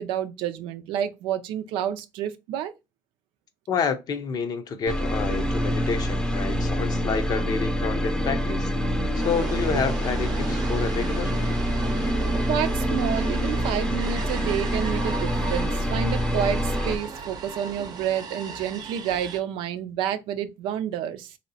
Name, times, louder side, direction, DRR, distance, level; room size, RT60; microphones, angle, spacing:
voice 1, 0.0-2.7 12.5-21.4, right 9 dB, 90° right, 0.4 m, -29 dB
voice 2, 3.7-8.7 9.1-11.3 12.0-12.1, left 5 dB, 50° left, 0.6 m, -29 dB
sound 1, 4.9-17.0, equal, 10° left, 0.6 m, -26 dB
sound 2, 9.2-19.4, right 5 dB, 50° right, 0.7 m, -36 dB
3.1 x 2.8 x 2.7 m
cardioid pair, 95°, 8 cm